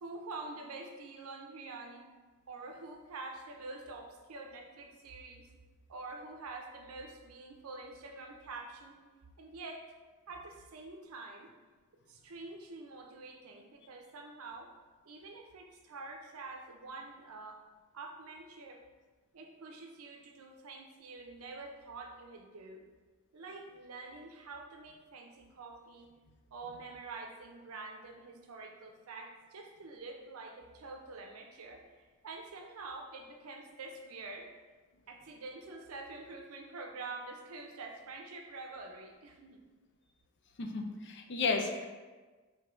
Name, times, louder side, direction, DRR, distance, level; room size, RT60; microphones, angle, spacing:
voice 1, 0.0-2.1 2.5-5.5 5.9-9.0 9.4-9.9 10.3-11.5 12.1-14.7 15.1-17.6 17.9-18.8 19.3-22.8 23.3-26.1 26.5-34.5 35.1-39.6, right 3 dB, 85° right, 2 dB, 0.5 m, -46 dB
voice 2, 40.6-41.9, left 4 dB, 55° left, 4 dB, 0.4 m, -33 dB
4.5 x 2.8 x 3.0 m, 1.3 s
head